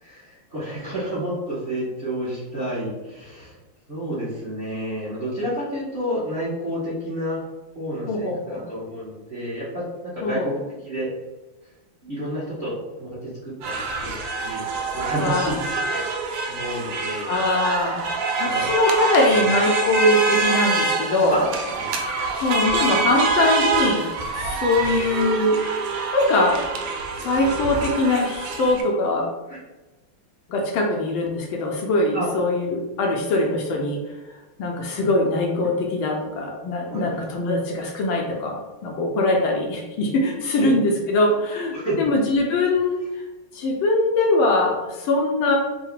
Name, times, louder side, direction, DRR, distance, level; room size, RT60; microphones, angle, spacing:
voice 1, 0.0-3.5 3.9-7.4 7.7-10.6 10.8-11.1 12.0-12.7 13.0-17.3 18.4-18.6 21.3-21.5 21.7-22.0 24.8-25.0 29.5-29.6 32.1-32.3 36.9-37.0 40.6-40.7 41.7-42.1, equal, 35° right, -9 dB, 1.1 m, -30 dB
voice 2, 8.1-8.7 10.2-10.5 15.2-15.5 17.3-18.0 18.4-21.4 22.4-25.6 26.1-26.6 27.2-29.3 30.5-34.0 34.6-43.2 43.5-45.6, left 2 dB, 75° left, 0 dB, 1.3 m, -22 dB
sound 1, 13.6-28.8, right 3 dB, 85° right, 1.5 m, -25 dB
3.8 x 2.1 x 4.3 m, 1.1 s
omnidirectional pair, 2.4 m